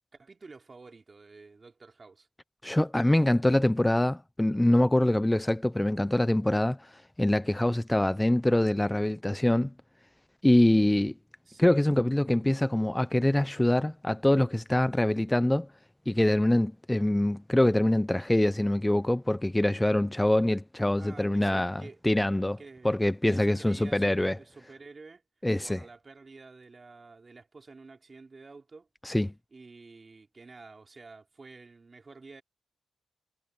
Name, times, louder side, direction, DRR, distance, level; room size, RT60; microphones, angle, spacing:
voice 1, 0.1-2.3 11.5-11.8 21.0-22.0 22.6-25.2 25.6-28.9 29.5-32.4, right 3 dB, 35° right, 3.2 m, -50 dB
voice 2, 2.6-9.7 10.4-11.1 11.6-15.7 16.1-22.6 22.8-24.4 25.4-25.8 29.0-29.3, left 1 dB, 10° left, 0.5 m, -24 dB
cardioid pair, 80°, 0 cm